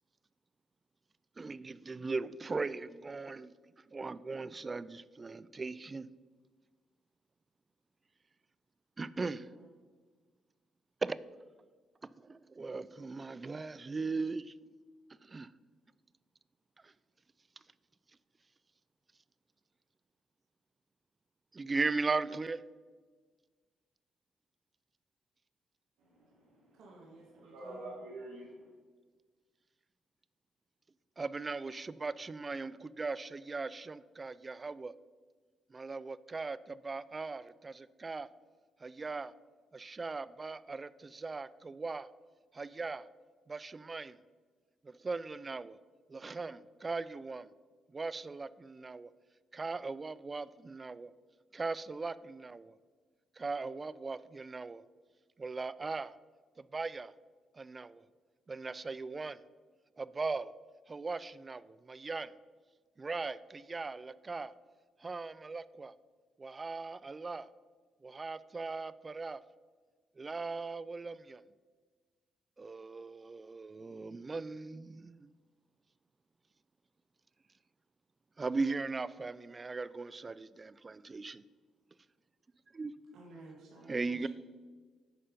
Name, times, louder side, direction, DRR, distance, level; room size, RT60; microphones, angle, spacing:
voice 1, 1.4-3.5 3.9-6.1 9.0-9.5 11.0-11.2 12.0-14.5 15.2-15.5 16.8-16.9 21.5-22.6 31.2-34.9 35.7-38.3 38.8-39.3 39.7-42.1 42.5-43.1 43.5-44.2 44.8-45.8 46.1-47.5 47.9-49.1 49.5-51.1 51.5-52.8 53.4-54.8 55.4-56.1 56.6-57.1 57.5-58.0 58.5-59.4 60.0-60.5 60.9-62.3 63.0-64.5 65.0-66.0 66.4-67.5 68.0-69.4 70.2-71.4 72.6-75.3 78.4-81.4 82.7-82.9 83.9-84.3, right 3 dB, 30° right, 17 dB, 0.3 m, -39 dB
voice 2, 26.0-26.8 27.4-28.7, right 2 dB, 90° right, -9 dB, 2.7 m, -47 dB
voice 3, 26.7-27.9 83.1-84.3, right 2 dB, 70° right, -3 dB, 1.9 m, -54 dB
8.8 x 5.2 x 5.1 m, 1.5 s
cardioid pair, 90°, 0 cm